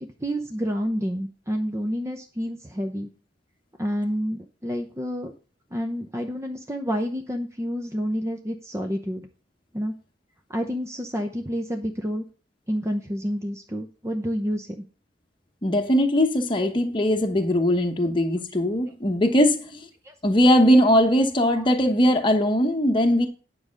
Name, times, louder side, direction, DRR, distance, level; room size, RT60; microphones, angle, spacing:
voice 1, 0.2-3.1 3.8-5.3 5.7-9.3 9.7-9.9 10.5-12.2 12.7-14.8 20.0-20.1 21.6-21.7, equal, 15° right, 0.7 m, -29 dB
voice 2, 15.6-19.9 20.2-23.3, equal, 25° left, 1.0 m, -20 dB
9.7 x 4.9 x 6.4 m
head